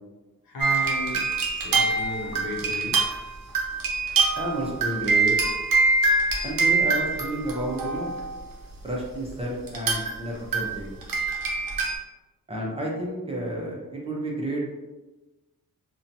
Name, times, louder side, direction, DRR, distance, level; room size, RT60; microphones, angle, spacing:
voice 1, 0.5-1.3 1.6-3.1, left 1 dB, 90° left, -1 dB, 0.7 m, -34 dB
sound 1, 0.6-8.3 9.7-10.1 10.5-11.9, right 3 dB, 75° right, 0.6 m, -24 dB
voice 2, 4.4-5.4 6.4-8.1 8.8-10.9 12.5-14.7, right 1 dB, 15° right, -3 dB, 0.5 m, -31 dB
2.7 x 2.2 x 2.6 m, 1.1 s
wide cardioid pair, 140°, 34 cm